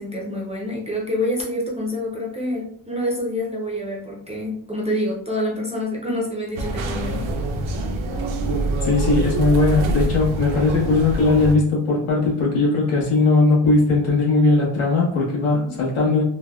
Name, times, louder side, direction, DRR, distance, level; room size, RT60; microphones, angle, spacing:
voice 1, 0.0-7.3 15.6-15.7, left 1 dB, 15° right, -4 dB, 0.4 m, -27 dB
sound 1, 6.6-11.6, right 2 dB, 75° right, 0.6 m, -25 dB
voice 2, 8.8-16.2, left 3 dB, 85° left, -4 dB, 1.2 m, -19 dB
3.3 x 2.1 x 2.2 m, 0.66 s
wide cardioid pair, 170°, 48 cm